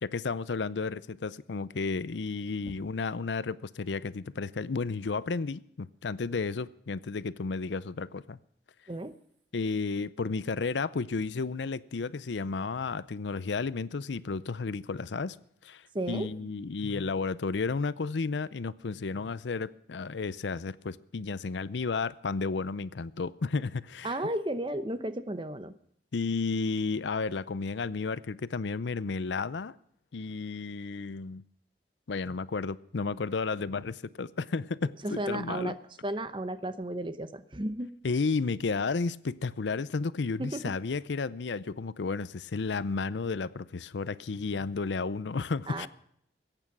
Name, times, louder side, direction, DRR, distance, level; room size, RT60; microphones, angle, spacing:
voice 1, 0.0-8.4 9.5-15.4 15.6-24.2 26.1-29.8 30.1-31.4 32.1-35.7 38.0-45.9, left 4 dB, 90° left, 18 dB, 0.6 m, -32 dB
voice 2, 15.9-16.5 24.0-25.7 35.0-35.8 36.0-37.9 40.4-40.7 45.7-45.9, right 1 dB, 30° right, 11 dB, 0.9 m, -34 dB
22.0 x 8.9 x 6.0 m, 0.70 s
head